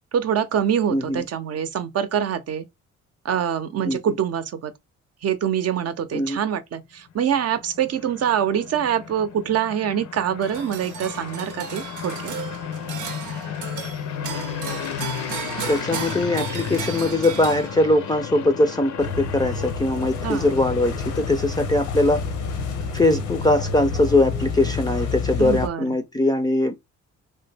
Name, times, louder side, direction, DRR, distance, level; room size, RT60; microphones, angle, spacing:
voice 1, 0.1-2.6 3.2-4.7 5.2-12.3 20.2-20.5 25.4-26.0, right 9 dB, 55° right, 0.6 m, -25 dB
voice 2, 0.9-1.2 3.9-4.0 6.1-6.4 15.7-22.2 22.9-26.7, left 2 dB, 15° left, 0.4 m, -21 dB
sound 1, 7.1-24.3, left 9 dB, 65° left, 0.6 m, -35 dB
sound 2, 10.4-18.1, right 8 dB, 90° right, 0.7 m, -35 dB
sound 3, 19.0-25.7, left 5 dB, 85° left, 0.9 m, -29 dB
3.2 x 2.1 x 3.3 m
cardioid pair, 90°, 30 cm